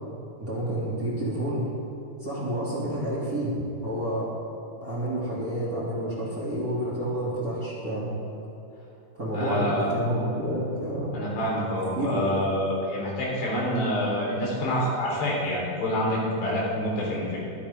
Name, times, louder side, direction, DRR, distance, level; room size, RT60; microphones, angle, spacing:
voice 1, 0.4-1.7 2.2-4.3 4.8-8.1 9.1-11.1 11.9-12.3, right 1 dB, 25° right, -8 dB, 2.8 m, -29 dB
voice 2, 9.3-9.9 10.2-10.3 11.1-17.4, equal, 90° left, -5 dB, 6.0 m, -27 dB
23.0 x 9.9 x 3.7 m, 2.9 s
omnidirectional pair, 4.7 m